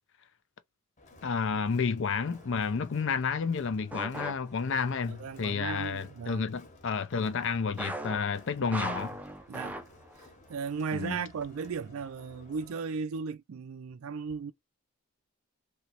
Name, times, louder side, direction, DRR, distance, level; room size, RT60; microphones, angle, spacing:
Crowd, 1.0-12.7, left 2 dB, 30° left, 0.9 m, -56 dB
voice 1, 1.2-9.2 10.9-11.2, left 5 dB, 55° left, 0.5 m, -31 dB
sound 1, 2.1-2.4 3.9-5.0 7.8-10.3 10.6-10.7 11.4-11.5, right 1 dB, 5° right, 0.4 m, -39 dB
voice 2, 5.1-6.5 9.5-9.8 10.5-14.5, right 5 dB, 70° right, 0.4 m, -36 dB
3.1 x 2.9 x 2.9 m
head